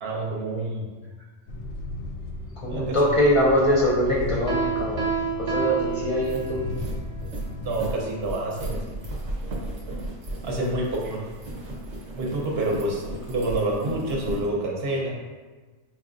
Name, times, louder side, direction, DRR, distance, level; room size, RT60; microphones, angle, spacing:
voice 1, 0.0-0.9 2.7-3.0 7.6-9.0 10.4-11.2 12.1-13.0 13.3-15.1, right 2 dB, 55° right, -3 dB, 1.0 m, -28 dB
sound 1, 1.5-8.0, left 2 dB, 65° left, 0.7 m, -35 dB
voice 2, 2.6-5.0 5.3-6.6 7.9-8.2, equal, 35° left, -5 dB, 0.6 m, -23 dB
Piano, 4.5-6.8, right 5 dB, 25° right, 0.5 m, -28 dB
sound 2, 5.6-5.7 6.0-14.5, right 1 dB, 85° right, 1.2 m, -35 dB
5.8 x 2.3 x 2.5 m, 1.3 s
omnidirectional pair, 1.3 m